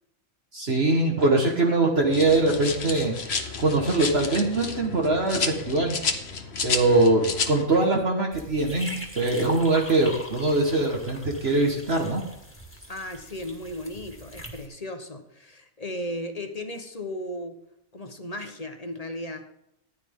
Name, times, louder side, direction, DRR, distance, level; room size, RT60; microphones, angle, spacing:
voice 1, 0.5-6.0 6.6-12.2, right 2 dB, 50° right, 1 dB, 1.7 m, -23 dB
sound 1, 2.1-7.6, left 5 dB, 55° left, 1.2 m, -31 dB
sound 2, 8.3-14.7, equal, 10° left, 1.9 m, -40 dB
voice 2, 12.9-17.6 17.9-19.5, left 1 dB, 30° left, 6 dB, 1.1 m, -35 dB
14.5 x 10.5 x 3.7 m, 0.80 s
omnidirectional pair, 1.4 m